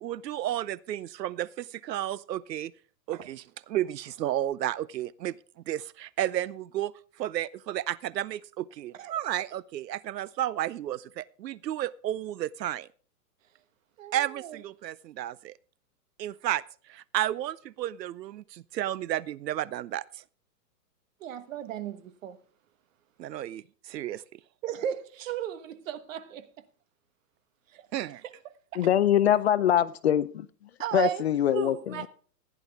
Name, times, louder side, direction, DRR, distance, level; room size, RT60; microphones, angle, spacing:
voice 1, 0.0-2.7 3.1-3.4 3.7-5.3 5.7-6.9 7.2-12.9 14.1-15.5 16.2-16.6 16.9-20.0 23.2-24.4 27.9-28.2, right 12 dB, 75° right, 0.7 m, -32 dB
voice 2, 14.0-14.6 21.2-22.4 24.6-26.5 27.7-27.9 28.7-28.9 29.3-29.4 30.8-32.1, right 11 dB, 50° right, 1.4 m, -35 dB
voice 3, 28.8-30.5 30.9-31.8, left 10 dB, 40° left, 0.5 m, -23 dB
15.5 x 10.5 x 3.5 m
hypercardioid pair, 155°, 50 cm